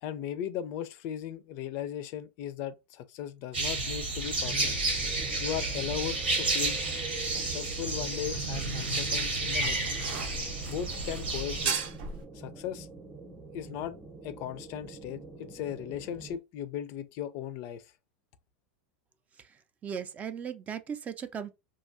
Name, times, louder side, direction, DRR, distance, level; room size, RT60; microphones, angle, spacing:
voice 1, 0.0-4.8 5.4-6.8 7.2-9.9 10.7-11.8 12.3-12.9 13.5-14.0 14.2-17.9, left 10 dB, 50° left, 0.3 m, -37 dB
sound 1, 3.5-11.7, right 2 dB, 90° right, 1.1 m, -31 dB
sound 2, 4.3-16.4, right 3 dB, 10° right, 0.8 m, -46 dB
sound 3, 5.2-12.2, right 6 dB, 70° right, 0.6 m, -40 dB
voice 2, 19.4-21.5, right 7 dB, 25° right, 0.4 m, -38 dB
2.7 x 2.3 x 2.5 m
hypercardioid pair, 100°, 6 cm